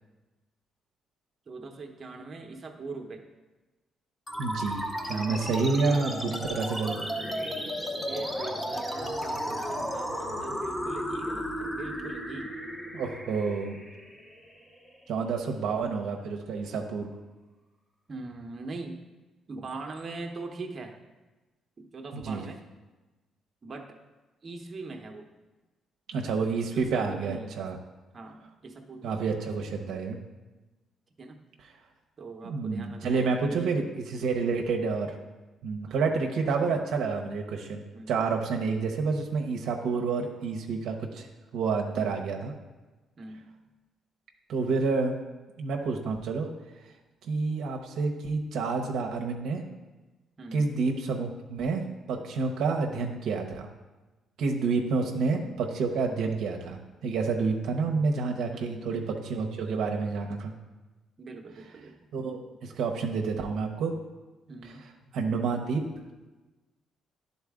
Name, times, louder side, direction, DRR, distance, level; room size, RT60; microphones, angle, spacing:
voice 1, 1.5-3.2 6.8-12.5 18.1-19.0 19.5-21.0 21.8-22.6 23.6-24.0 24.4-25.3 26.7-27.6 28.1-29.3 31.2-31.4 32.2-33.7 35.9-36.1 37.9-38.2 41.9-42.2 43.2-43.5 50.4-50.7 55.4-55.6 57.4-57.6 58.5-58.9 61.2-62.0 64.5-64.8, right 3 dB, 40° right, 3 dB, 0.8 m, -42 dB
sound 1, 4.3-15.2, equal, 10° left, 0.9 m, -34 dB
voice 2, 4.4-7.0 12.9-13.8 15.1-17.1 22.1-22.4 26.1-27.8 29.0-30.2 32.4-35.1 35.6-41.3 41.5-42.5 44.5-45.2 45.6-46.5 47.2-49.6 50.5-51.8 52.1-53.7 54.4-60.5 62.1-63.9 64.6-64.7 65.1-65.8, right 4 dB, 80° right, 2 dB, 0.7 m, -29 dB
10.5 x 4.0 x 3.6 m, 1.2 s
cardioid pair, 90°, 0 cm